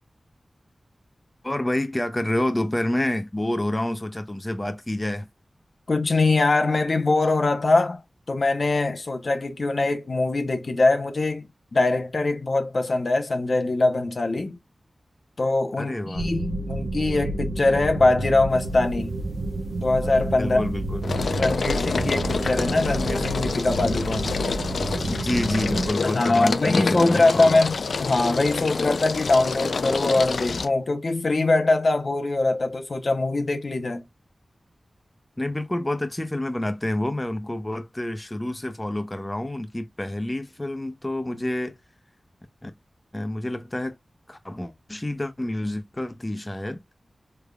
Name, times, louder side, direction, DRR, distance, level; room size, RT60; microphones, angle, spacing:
voice 1, 1.4-5.3 15.8-16.3 20.3-21.2 25.1-27.6 35.4-41.8 42.6-42.7 43.1-44.0 44.3-46.8, left 1 dB, 20° left, 0.7 m, -28 dB
voice 2, 5.9-8.0 8.3-11.4 11.7-14.6 15.4-19.2 19.8-20.7 21.3-24.3 26.0-34.0, left 2 dB, 65° left, 0.7 m, -22 dB
sound 1, 16.2-25.9, right 2 dB, 85° right, 0.5 m, -30 dB
sound 2, 18.6-19.2 19.5-30.7, left 4 dB, 80° left, 0.3 m, -28 dB
3.6 x 3.3 x 2.3 m
cardioid pair, 45°, 0 cm